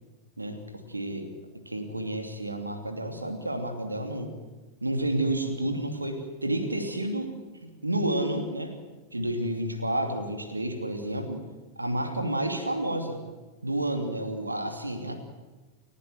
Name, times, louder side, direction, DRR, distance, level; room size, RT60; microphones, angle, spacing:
voice 1, 0.4-4.3 4.8-7.3 7.6-8.7 9.1-11.4 11.8-13.2 13.6-15.1, right 1 dB, 80° right, 5 dB, 2.9 m, -30 dB
30.0 x 11.5 x 9.6 m, 1.2 s
figure-of-eight pair, 90°, 0 cm